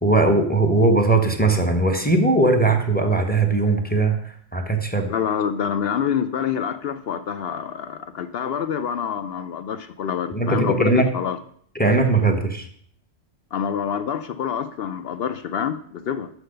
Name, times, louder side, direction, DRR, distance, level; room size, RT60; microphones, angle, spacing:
voice 1, 0.0-4.2 4.5-5.1 10.3-11.1 11.7-12.6, right 2 dB, 10° left, 5 dB, 0.8 m, -19 dB
voice 2, 5.1-11.4 13.5-16.3, left 8 dB, 65° left, 11 dB, 0.6 m, -26 dB
6.5 x 6.2 x 6.5 m, 0.62 s
omnidirectional pair, 1.4 m